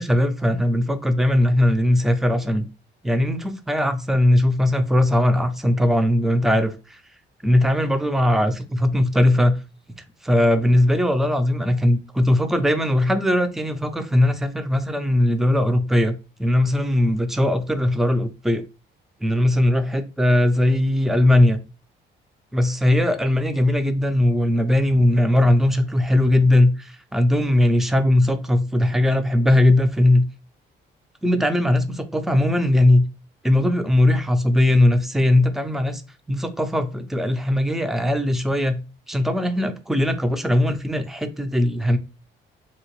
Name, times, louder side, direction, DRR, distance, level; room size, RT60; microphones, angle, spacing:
voice 1, 0.0-2.7 3.0-6.7 7.4-9.5 9.9-16.1 16.4-18.6 19.2-21.6 22.5-30.2 31.2-33.0 33.4-36.0 36.3-38.8 39.1-42.0, left 1 dB, ahead, 0.4 m, -19 dB
2.8 x 2.8 x 3.0 m
cardioid pair, 90°, 20 cm